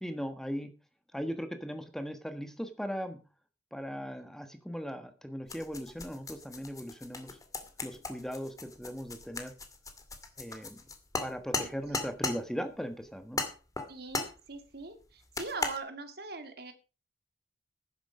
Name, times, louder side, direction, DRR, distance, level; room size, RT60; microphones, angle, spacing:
voice 1, 0.0-0.7 1.1-3.2 3.7-7.4 7.8-9.5 10.4-10.8 11.2-13.4, equal, 5° left, 8 dB, 1.4 m, -38 dB
sound 1, 5.5-12.4 13.4-14.4 15.3-15.8, left 3 dB, 20° left, 2.3 m, -36 dB
voice 2, 11.6-12.3 13.9-16.7, right 3 dB, 60° right, 8 dB, 2.2 m, -42 dB
12.0 x 10.0 x 4.9 m, 0.33 s
head